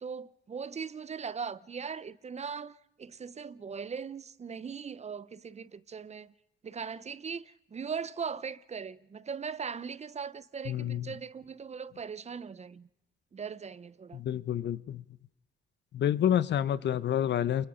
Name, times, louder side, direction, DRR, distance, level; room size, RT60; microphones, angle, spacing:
voice 1, 0.0-6.3 6.6-12.9 13.3-14.2, right 6 dB, 35° right, 0.8 m, -39 dB
voice 2, 10.7-11.1 14.1-15.0 15.9-17.7, left 10 dB, 60° left, 1.0 m, -28 dB
28.5 x 22.0 x 5.2 m
cardioid pair, 90°, 20 cm